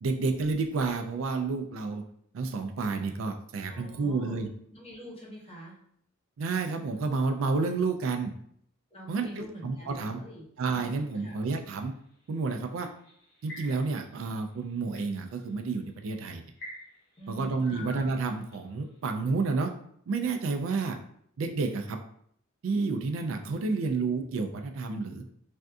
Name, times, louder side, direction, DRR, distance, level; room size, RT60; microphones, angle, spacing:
voice 1, 0.0-2.0 2.3-4.5 6.4-8.3 9.1-10.2 10.6-11.9 12.3-12.9 13.4-16.4 17.3-19.7 20.1-21.0 21.4-22.0 22.6-25.2, right 4 dB, 75° right, 5 dB, 0.4 m, -30 dB
voice 2, 3.7-4.4 4.7-5.8 8.9-10.5 11.2-11.4 17.2-17.9 20.8-20.9, equal, 30° left, -4 dB, 0.9 m, -45 dB
sound 1, 10.6-11.9 12.8-14.1 14.5-15.1 15.7-15.9 16.6-18.8, left 1 dB, 55° left, 1.0 m, -46 dB
3.4 x 2.6 x 2.3 m, 0.68 s
head